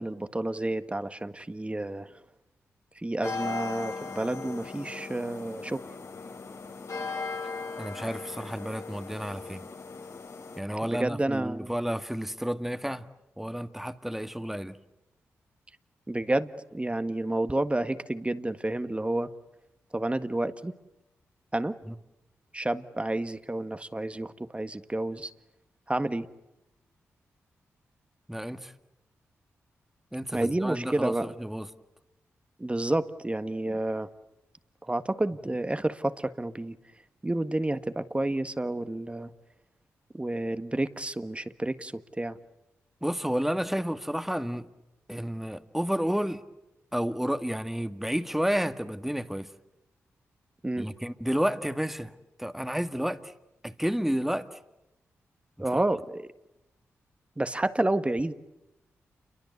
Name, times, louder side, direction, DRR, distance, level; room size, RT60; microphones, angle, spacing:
voice 1, 0.0-2.1 3.0-5.8 10.9-11.7 16.1-19.3 19.9-20.7 21.5-21.8 22.5-25.3 25.9-26.3 30.3-31.3 32.6-34.1 34.8-36.8 37.2-39.3 40.1-42.4 50.6-50.9 55.6-56.3 57.4-58.3, right 1 dB, 20° right, 11 dB, 1.7 m, -30 dB
sound 1, 3.2-10.6, left 4 dB, 60° left, 4.1 m, -38 dB
voice 2, 7.8-9.7 10.6-13.1 13.4-14.8 21.9-22.0 28.3-28.7 30.1-31.7 35.5-35.6 43.0-44.7 45.1-46.4 46.9-49.5 50.8-52.1 52.4-53.3 53.6-54.6 55.6-55.8, equal, 5° right, 9 dB, 1.8 m, -31 dB
29.0 x 23.5 x 8.3 m, 0.92 s
supercardioid pair, 40°, 6 cm